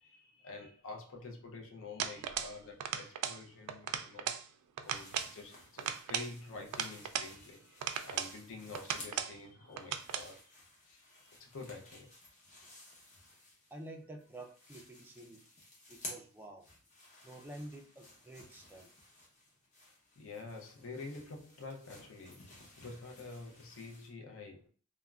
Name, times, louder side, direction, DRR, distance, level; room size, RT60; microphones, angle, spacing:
voice 1, 0.0-4.3 4.8-10.5 10.8-12.1 20.2-24.7, left 3 dB, 60° left, 0.5 m, -48 dB
sound 1, 2.0-2.6 2.8-3.4 3.7-4.4 4.8-5.3 5.8-7.3 7.8-8.4 8.7-9.4 9.8-10.3, right 9 dB, 90° right, 0.3 m, -37 dB
sound 2, 4.8-9.4 9.7-13.9 14.2-24.1, left 1 dB, 35° left, 0.8 m, -55 dB
voice 2, 13.7-15.4 15.9-16.7 17.2-18.9, right 1 dB, 10° right, 0.4 m, -49 dB
3.4 x 2.1 x 2.3 m
head